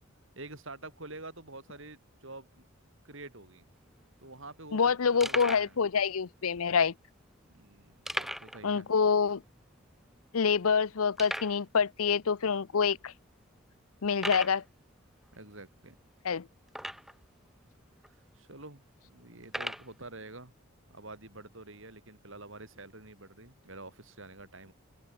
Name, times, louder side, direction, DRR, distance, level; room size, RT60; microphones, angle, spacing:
voice 1, 0.3-2.6 3.0-3.6 4.2-5.8 7.5-8.9 15.3-16.0 18.0-20.5 20.9-24.7, right 2 dB, 60° right, 5.0 m, -48 dB
sound 1, 3.7-3.8 4.0-4.2 4.7-4.8 5.2-5.7 6.5-6.6 8.1-8.6 8.9-9.0 9.5-9.6 10.2-10.3 11.2-11.6 12.4-12.5 13.1-13.2 14.1-14.6 16.7-17.3 18.0-18.1 19.4-19.9, equal, ahead, 1.3 m, -37 dB
voice 2, 4.7-6.9 8.6-9.4 10.3-13.1 14.0-14.6 16.2-16.5, left 6 dB, 80° left, 0.7 m, -26 dB
open air
head